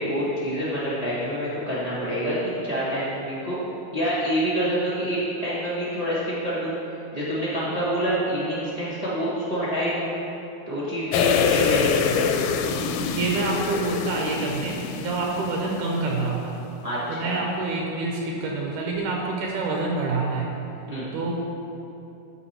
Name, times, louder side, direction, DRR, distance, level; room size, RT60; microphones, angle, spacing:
voice 1, 0.0-3.6 3.9-6.7 7.1-10.1 10.7-12.3 16.8-17.4 20.9-21.1, equal, 30° right, -9 dB, 0.6 m, -27 dB
sound 1, 11.1-16.0 16.3-16.4, left 7 dB, 90° left, 2.1 m, -25 dB
voice 2, 12.8-16.6 17.1-20.5 21.1-21.3, right 3 dB, 80° right, -1 dB, 2.3 m, -27 dB
12.5 x 4.8 x 4.3 m, 2.8 s
omnidirectional pair, 3.6 m